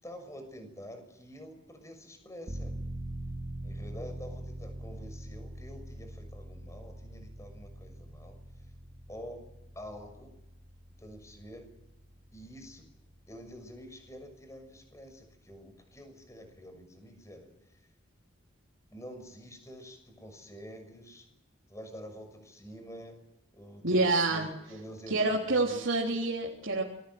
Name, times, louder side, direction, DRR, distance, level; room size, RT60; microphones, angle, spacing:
voice 1, 0.0-2.7 3.6-8.3 9.1-9.4 9.7-10.4 11.0-11.7 12.3-12.9 13.3-17.5 18.9-21.3 21.7-23.2 23.5-25.9, equal, 15° left, 6 dB, 6.5 m, -47 dB
sound 1, 2.5-15.0 15.3-15.4, right 1 dB, 20° right, 2.8 m, -44 dB
voice 2, 23.8-24.5 25.1-26.8, right 2 dB, 65° right, -2 dB, 3.7 m, -27 dB
27.0 x 22.0 x 7.9 m, 0.88 s
head